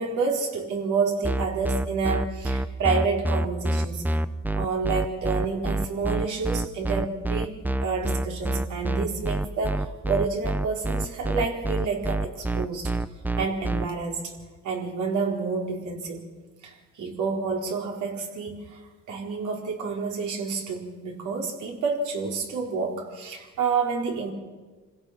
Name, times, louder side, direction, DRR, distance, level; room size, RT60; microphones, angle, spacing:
voice 1, 0.0-4.1 4.6-12.9 13.4-14.3 14.6-16.2 16.6-18.8 19.1-24.3, right 4 dB, 75° right, 0 dB, 4.4 m, -29 dB
sound 1, 1.2-13.8, right 2 dB, 5° right, 0.7 m, -26 dB
28.0 x 16.5 x 6.0 m, 1.3 s
cardioid pair, 90°, 30 cm